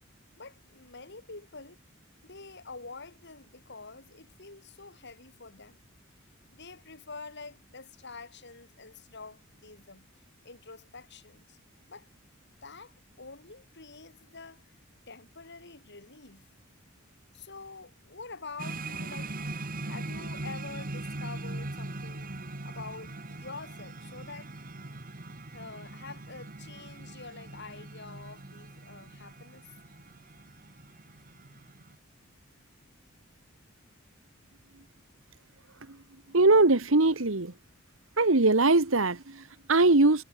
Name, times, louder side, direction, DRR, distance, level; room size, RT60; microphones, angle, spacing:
voice 1, 0.4-1.8 2.2-5.8 6.5-10.1 10.4-11.6 11.9-12.1 12.6-14.8 15.1-16.5 17.3-19.3 19.9-24.5 25.5-29.6, left 4 dB, 60° left, 5.9 m, -46 dB
sound 1, 18.6-31.9, right 2 dB, 45° right, 1.9 m, -41 dB
voice 2, 36.3-37.5 38.2-40.2, right 2 dB, 70° right, 1.6 m, -22 dB
head